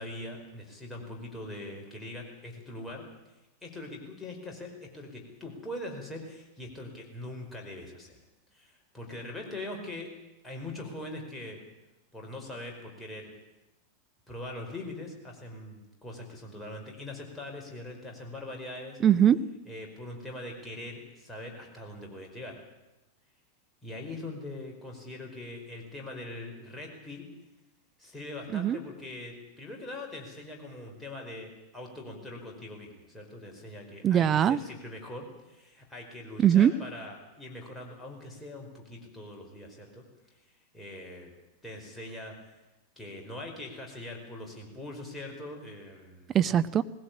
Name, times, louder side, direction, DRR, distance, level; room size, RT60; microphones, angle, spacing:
voice 1, 0.0-3.0 3.6-8.2 8.5-10.1 10.4-11.6 12.1-13.3 14.3-19.0 19.6-22.6 23.8-27.3 28.0-40.0 40.7-41.3 41.6-42.3 43.0-46.2, left 1 dB, 10° left, 0 dB, 5.1 m, -42 dB
voice 2, 19.0-19.5 28.5-28.8 34.0-34.6 36.4-36.7 46.3-46.8, right 9 dB, 25° right, 13 dB, 0.7 m, -21 dB
19.5 x 16.5 x 8.6 m, 1.0 s
figure-of-eight pair, 90°, 0 cm